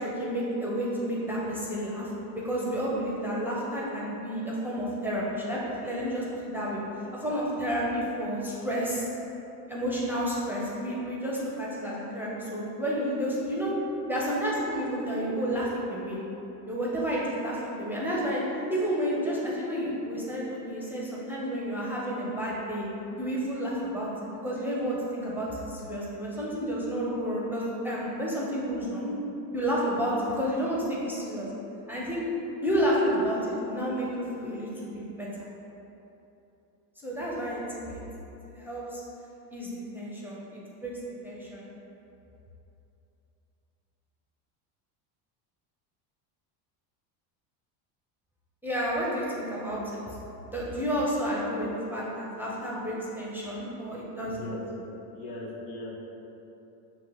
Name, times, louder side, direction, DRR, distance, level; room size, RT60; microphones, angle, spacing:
voice 1, 0.0-2.1 2.4-6.8 7.1-9.1 9.7-13.7 14.1-16.2 16.7-18.4 18.7-22.9 23.2-29.2 29.5-31.5 31.9-32.2 32.6-35.3 37.0-38.0 38.5-39.0 39.5-40.9 41.2-41.6 48.6-50.1 50.4-54.4, equal, 5° right, -6 dB, 0.6 m, -30 dB
voice 2, 54.2-54.6 55.1-55.9, left 2 dB, 85° left, -4 dB, 1.1 m, -38 dB
5.3 x 3.0 x 3.0 m, 3.0 s
supercardioid pair, 115°, 48 cm